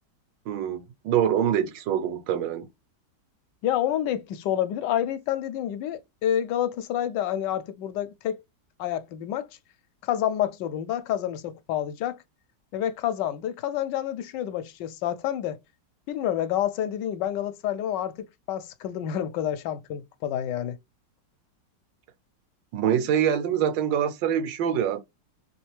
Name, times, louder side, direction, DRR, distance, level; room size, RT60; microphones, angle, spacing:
voice 1, 0.5-2.7 22.7-25.0, right 9 dB, 85° right, 1.4 m, -25 dB
voice 2, 3.6-8.4 8.8-9.5 10.0-12.2 12.7-15.6 16.1-20.8, left 11 dB, 80° left, 1.2 m, -28 dB
3.2 x 3.0 x 3.2 m
omnidirectional pair, 1.9 m